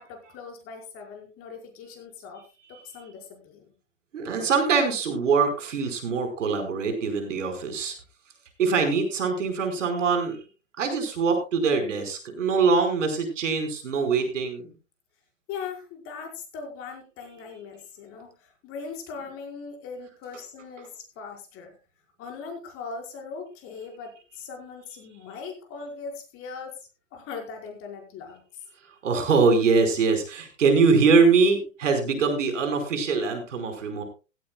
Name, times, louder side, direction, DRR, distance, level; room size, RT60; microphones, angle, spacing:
voice 1, 0.0-2.4 2.7-3.6 15.5-21.7 22.2-26.8 27.1-28.4, left 5 dB, 35° left, 2 dB, 5.2 m, -40 dB
voice 2, 4.1-7.9 8.6-10.4 10.8-14.7 29.0-34.0, right 4 dB, 75° right, 6 dB, 5.1 m, -23 dB
16.0 x 15.5 x 2.3 m, 0.31 s
hypercardioid pair, 115°, 38 cm